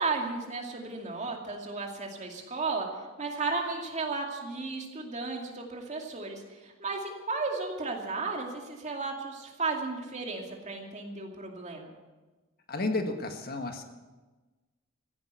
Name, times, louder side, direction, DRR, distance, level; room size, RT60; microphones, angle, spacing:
voice 1, 0.0-2.9 3.2-11.9, right 3 dB, 35° right, 1 dB, 2.5 m, -34 dB
voice 2, 12.7-13.8, left 2 dB, 50° left, 5 dB, 1.5 m, -32 dB
15.5 x 10.5 x 8.2 m, 1.2 s
head